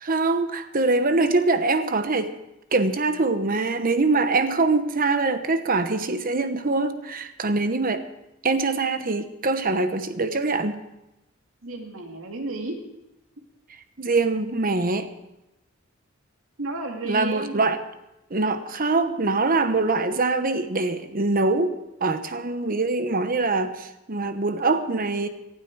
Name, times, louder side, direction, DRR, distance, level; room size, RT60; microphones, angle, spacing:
voice 1, 0.0-2.3 2.7-8.0 8.4-10.8 14.0-15.1 17.0-17.8 18.3-25.3, right 3 dB, 45° right, 10 dB, 1.1 m, -23 dB
voice 2, 11.6-12.8 16.6-17.8, right 2 dB, 80° right, 2 dB, 2.3 m, -32 dB
18.5 x 12.5 x 4.7 m, 0.93 s
head